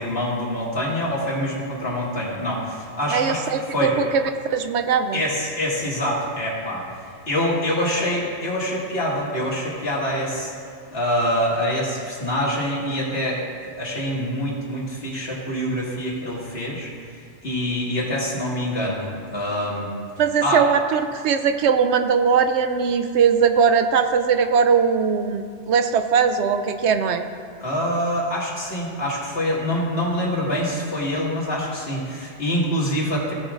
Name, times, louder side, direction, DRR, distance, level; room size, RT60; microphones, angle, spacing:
voice 1, 0.0-3.4 3.7-3.9 5.1-17.2 17.4-19.9 20.4-20.6 27.6-33.3, equal, 55° left, -5 dB, 2.3 m, -25 dB
voice 2, 3.1-4.2 4.5-5.2 20.2-27.2, right 6 dB, 75° right, 8 dB, 0.8 m, -20 dB
16.5 x 8.7 x 2.5 m, 2.2 s
omnidirectional pair, 1.2 m